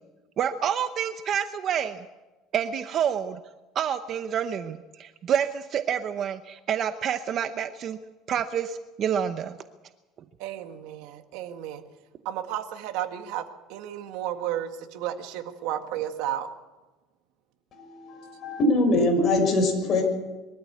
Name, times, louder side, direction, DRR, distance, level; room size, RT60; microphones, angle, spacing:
voice 1, 0.4-2.0 2.5-3.4 3.7-8.0 8.3-9.6, right 8 dB, 40° right, 0.8 m, -28 dB
voice 2, 10.4-11.8 12.3-13.4 13.7-16.5, right 11 dB, 75° right, 1.8 m, -32 dB
voice 3, 17.8-20.0, left 2 dB, 35° left, 6.2 m, -23 dB
23.0 x 13.5 x 8.5 m
cardioid pair, 145°, 0 cm